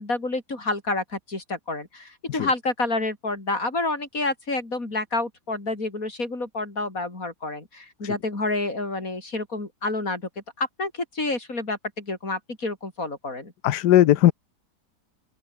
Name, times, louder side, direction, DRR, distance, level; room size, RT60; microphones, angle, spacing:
voice 1, 0.0-10.2 10.6-13.5, left 2 dB, 55° left, 5.5 m, -29 dB
voice 2, 13.6-14.3, left 13 dB, 75° left, 1.4 m, -18 dB
open air
omnidirectional pair, 1.8 m